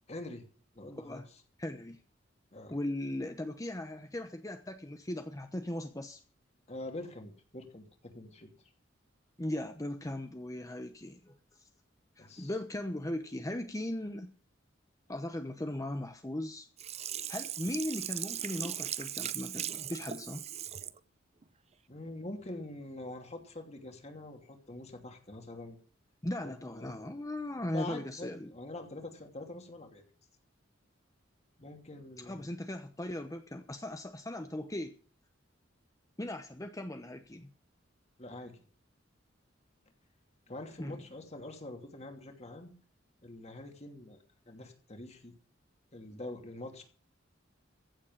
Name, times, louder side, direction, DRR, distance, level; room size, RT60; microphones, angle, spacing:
voice 1, 0.1-0.4 0.7-1.2 2.5-2.7 6.7-8.5 12.2-12.5 21.9-25.8 26.4-27.1 27.7-30.0 31.6-32.5 38.2-38.6 40.5-42.7 43.2-44.2 44.5-45.3 45.9-46.8, left 2 dB, 35° left, 4 dB, 2.7 m, -45 dB
voice 2, 0.9-1.3 1.6-2.0 2.7-6.2 9.4-11.7 12.2-14.3 15.1-16.7 17.3-20.4 26.2-28.5 32.2-34.9 36.2-37.5 40.8-41.0, left 1 dB, 20° left, 7 dB, 0.9 m, -38 dB
Sink (filling or washing), 16.8-21.0 21.4-21.5, right 10 dB, 35° right, 0.6 m, -38 dB
15.0 x 7.4 x 7.3 m, 0.41 s
head